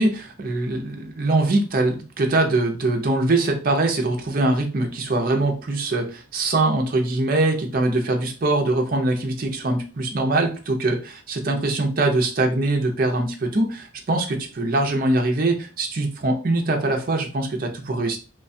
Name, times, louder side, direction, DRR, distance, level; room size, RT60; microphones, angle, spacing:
voice 1, 0.0-18.2, right 2 dB, 45° right, 3 dB, 0.5 m, -22 dB
3.1 x 2.2 x 2.6 m, 0.35 s
head